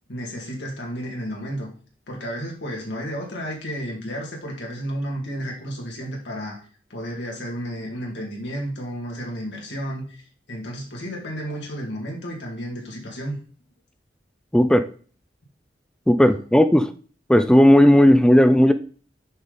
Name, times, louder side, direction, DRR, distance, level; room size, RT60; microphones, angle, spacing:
voice 1, 0.1-1.7 2.1-6.6 6.9-13.4, equal, 85° left, 2.3 m, -32 dB
voice 2, 14.5-14.9 16.1-16.9 17.3-18.7, equal, 5° left, 0.4 m, -14 dB
8.0 x 5.4 x 4.0 m
head